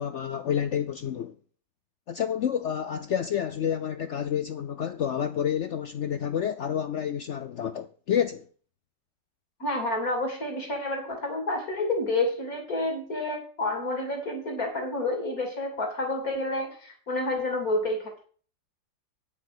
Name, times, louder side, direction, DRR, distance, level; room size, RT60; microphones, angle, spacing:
voice 1, 0.0-1.3 2.1-8.4, left 9 dB, 80° left, 0.6 m, -29 dB
voice 2, 9.6-18.1, left 2 dB, 50° left, 3.8 m, -29 dB
9.7 x 7.5 x 6.1 m
omnidirectional pair, 1.9 m